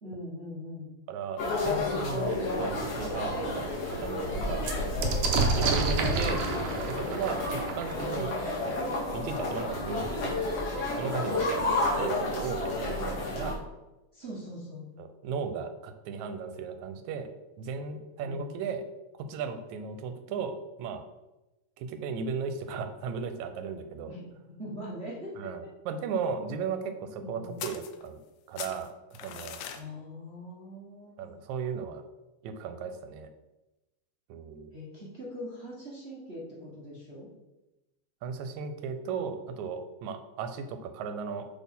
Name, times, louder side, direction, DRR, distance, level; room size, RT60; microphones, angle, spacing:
voice 1, 0.0-1.0 6.3-6.6 11.9-12.1 14.1-14.9 18.2-18.5 24.1-24.2 24.6-25.3 27.2-27.6 29.7-31.4 34.7-37.3, equal, 40° right, -7 dB, 0.9 m, -42 dB
voice 2, 1.1-4.7 5.6-6.5 6.9-8.3 8.7-10.5 11.0-13.6 15.0-17.3 17.6-18.8 19.1-21.0 21.8-24.2 25.4-28.2 28.5-29.6 31.2-32.0 32.4-33.3 34.3-34.7 38.2-41.5, right 6 dB, 85° right, 8 dB, 2.0 m, -36 dB
sound 1, 1.4-13.5, left 2 dB, 60° left, 2.8 m, -31 dB
sound 2, 2.6-2.7 3.2-3.3 3.5-9.1 10.0-10.1 10.4-11.0, right 3 dB, 65° right, 1.5 m, -31 dB
sound 3, 27.6-28.3 28.6-29.8, left 9 dB, 80° left, 1.6 m, -40 dB
6.4 x 4.2 x 5.4 m, 1.0 s
omnidirectional pair, 3.3 m